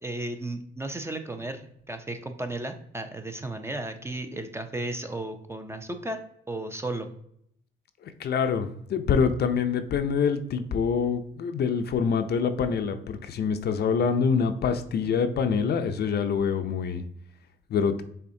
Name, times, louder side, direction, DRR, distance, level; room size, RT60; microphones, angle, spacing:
voice 1, 0.0-6.2 6.5-7.1, right 2 dB, 15° right, 6 dB, 0.5 m, -34 dB
voice 2, 8.0-17.0 17.7-18.0, left 6 dB, 55° left, 9 dB, 0.5 m, -25 dB
5.6 x 3.5 x 2.6 m, 0.70 s
cardioid pair, 90°, 20 cm